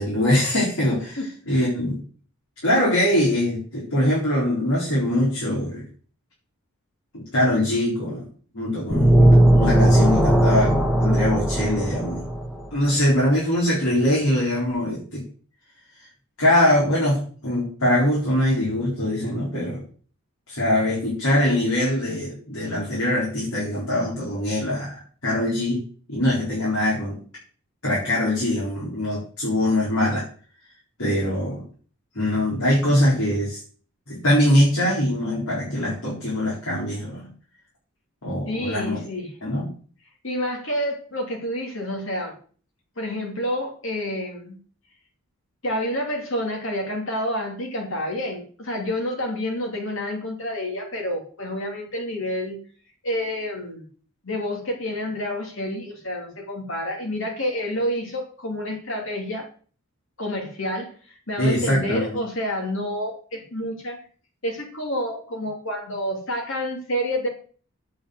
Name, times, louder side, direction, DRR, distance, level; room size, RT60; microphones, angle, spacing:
voice 1, 0.0-1.2 1.5-2.0 2.6-5.8 7.1-8.2 8.5-12.2 12.7-15.2 16.4-19.8 20.5-25.8 26.1-27.2 27.8-30.3 31.0-31.6 32.1-33.6 34.1-37.3 38.2-39.0 39.4-39.7 61.4-62.2, left 1 dB, 80° left, -6 dB, 4.4 m, -22 dB
sound 1, 8.9-12.6, right 1 dB, 5° right, 1.2 m, -17 dB
voice 2, 38.4-39.3 40.2-42.4 43.0-44.6 45.6-52.6 53.0-53.9 54.2-59.5 60.2-60.9 61.3-64.0 64.4-67.3, equal, 60° left, 2 dB, 2.9 m, -28 dB
8.7 x 5.5 x 8.0 m, 0.43 s
head